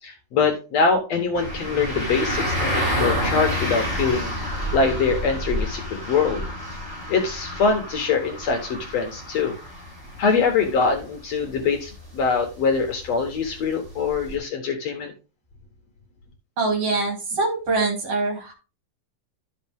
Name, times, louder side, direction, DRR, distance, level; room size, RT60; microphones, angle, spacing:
voice 1, 0.0-4.3 4.7-6.4 7.1-9.5 10.2-15.1, left 5 dB, 60° left, 3 dB, 2.1 m, -23 dB
sound 1, 1.3-14.4, equal, 10° right, 5.2 m, -29 dB
voice 2, 16.6-18.5, right 3 dB, 50° right, 0 dB, 3.6 m, -24 dB
12.0 x 5.4 x 3.5 m, 0.32 s
omnidirectional pair, 3.8 m